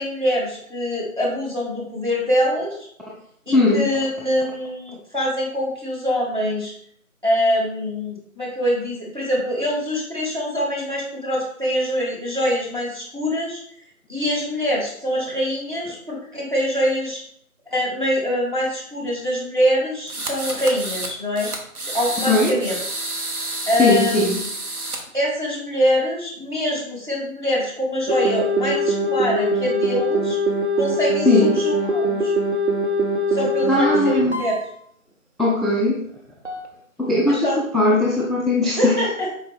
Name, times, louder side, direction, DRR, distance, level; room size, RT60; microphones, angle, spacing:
voice 1, 0.0-2.9 3.5-6.7 7.2-13.6 14.1-17.2 17.7-21.5 21.9-22.8 23.7-24.3 25.1-30.4 30.7-32.3 33.3-34.5 37.3-37.6 38.6-39.3, equal, 35° right, -2 dB, 0.9 m, -24 dB
voice 2, 3.5-3.9 22.3-22.6 23.8-24.4 31.2-31.6 33.7-34.4 35.4-36.0 37.0-37.5 37.7-39.0, left 2 dB, ahead, -6 dB, 0.4 m, -18 dB
sound 1, 20.1-21.1 21.4-25.0, right 2 dB, 85° right, 1.0 m, -29 dB
sound 2, 28.1-34.7 36.4-36.6, right 1 dB, 50° right, 0.5 m, -22 dB
4.2 x 2.2 x 3.4 m, 0.68 s
figure-of-eight pair, 170°, 43 cm